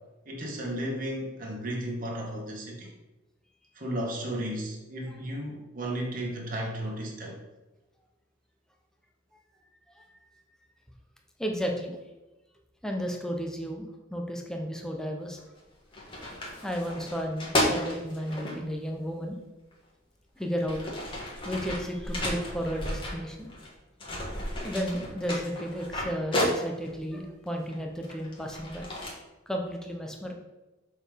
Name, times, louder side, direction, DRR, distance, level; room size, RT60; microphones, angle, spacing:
voice 1, 0.2-2.9 3.7-7.4, right 1 dB, 45° right, -2 dB, 1.7 m, -34 dB
voice 2, 11.4-12.0 12.8-15.4 16.6-19.4 20.4-21.0 21.4-23.5 24.6-28.9 29.5-30.3, equal, 5° left, 1 dB, 0.9 m, -33 dB
sound 1, 15.4-15.6 15.9-18.6 19.7-19.8 20.4-23.7 24.0-27.0 27.6-29.1, left 1 dB, 25° left, 1.7 m, -32 dB
6.9 x 4.5 x 5.2 m, 1.0 s
head